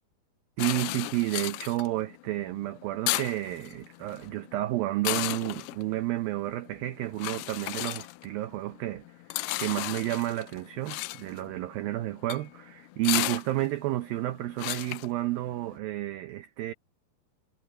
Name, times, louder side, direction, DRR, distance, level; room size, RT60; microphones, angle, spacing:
sound 1, 0.6-15.8, left 19 dB, 85° left, 2.3 m, -35 dB
voice 1, 0.6-16.7, right 16 dB, 85° right, 2.1 m, -31 dB
omnidirectional pair, 5.1 m